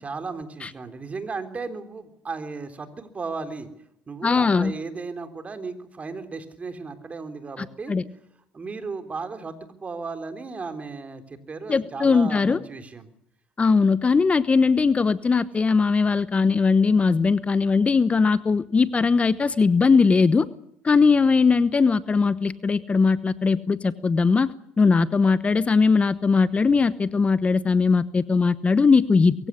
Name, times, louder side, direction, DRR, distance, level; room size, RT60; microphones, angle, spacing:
voice 1, 0.0-3.7 4.1-7.9 8.5-13.1, right 4 dB, 30° right, 8 dB, 3.8 m, -35 dB
voice 2, 4.2-4.7 7.6-8.0 11.7-12.6 13.6-20.5 20.8-24.5 24.8-29.3, left 4 dB, 30° left, 16 dB, 1.0 m, -20 dB
23.0 x 16.0 x 9.9 m, 0.77 s
supercardioid pair, 70°, 4 cm